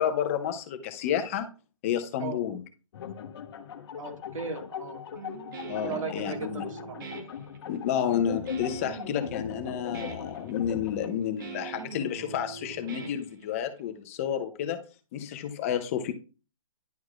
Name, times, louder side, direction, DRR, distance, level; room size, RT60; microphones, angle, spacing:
voice 1, 0.0-1.5 1.8-2.6 5.7-6.6 7.7-14.8 15.1-16.1, left 9 dB, 25° left, 0.5 m, -30 dB
sound 1, 2.9-11.1, left 8 dB, 50° left, 0.9 m, -39 dB
voice 2, 4.0-5.3 5.8-7.0, right 4 dB, 75° right, 1.8 m, -37 dB
Guitar, 5.2-13.8, right 6 dB, 40° right, 1.0 m, -43 dB
10.5 x 4.7 x 2.3 m
hypercardioid pair, 150°, 17 cm